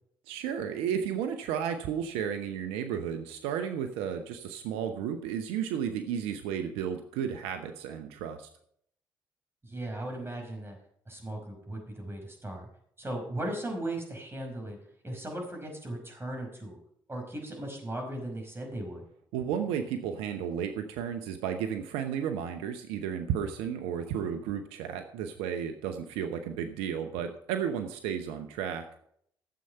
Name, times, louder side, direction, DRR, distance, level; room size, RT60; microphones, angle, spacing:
voice 1, 0.3-8.5 19.3-28.8, right 8 dB, 85° right, 7 dB, 0.8 m, -33 dB
voice 2, 9.6-10.8 11.1-12.7 13.0-14.8 15.0-16.8 17.1-19.0, right 1 dB, 25° right, 2 dB, 5.2 m, -37 dB
13.0 x 7.8 x 5.6 m, 0.69 s
hypercardioid pair, 50°, 10 cm